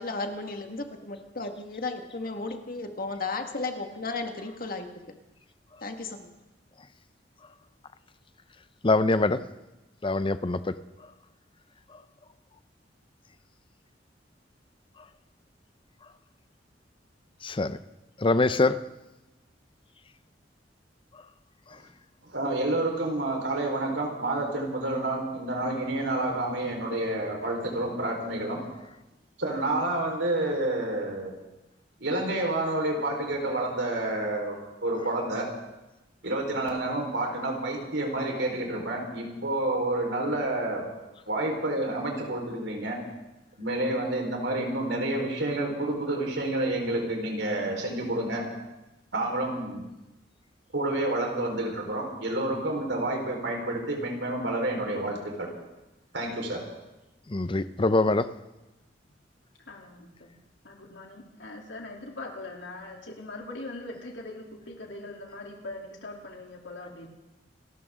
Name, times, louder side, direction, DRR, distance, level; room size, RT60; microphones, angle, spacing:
voice 1, 0.0-4.9 5.8-6.3, left 3 dB, 55° left, 5 dB, 1.8 m, -34 dB
voice 2, 8.8-9.4 10.0-10.8 17.4-17.8 18.2-18.8 57.3-58.3, left 2 dB, 30° left, 13 dB, 0.6 m, -24 dB
voice 3, 22.2-28.6 29.4-31.3 32.0-35.5 36.2-40.8 41.3-43.0 43.6-48.4 49.1-49.8 50.7-55.5 56.1-56.6, right 1 dB, 90° right, 1 dB, 4.4 m, -29 dB
voice 4, 59.6-60.3 60.6-67.1, left 2 dB, 85° left, 0 dB, 3.2 m, -41 dB
28.0 x 13.5 x 3.8 m, 1.0 s
head